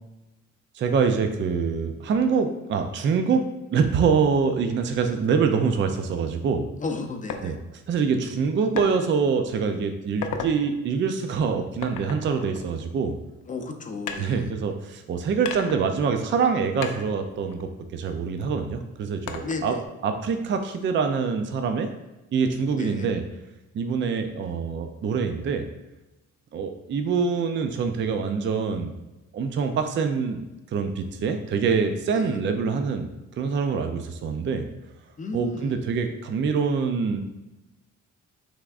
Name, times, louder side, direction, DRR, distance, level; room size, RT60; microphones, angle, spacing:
voice 1, 0.7-3.4 3.7-6.6 7.4-7.5 7.9-13.1 14.2-19.8 20.0-21.9 22.3-23.2 23.7-25.6 26.5-28.9 29.3-30.4 30.7-33.1 33.4-34.6 35.3-37.2, right 5 dB, 40° right, 6 dB, 0.4 m, -25 dB
voice 2, 6.8-7.6 13.5-14.6 19.4-19.8 22.7-23.1 32.1-32.4 35.2-35.8, left 4 dB, 25° left, 5 dB, 0.6 m, -34 dB
sound 1, 7.3-7.5 8.8-8.9 9.5-9.7 10.1-10.6 11.8-13.3 14.1-15.0 15.5-16.5 16.8-18.4 19.3-19.9, left 6 dB, 85° left, 0.6 m, -36 dB
5.8 x 3.5 x 2.4 m, 1.0 s
cardioid pair, 105°, 30 cm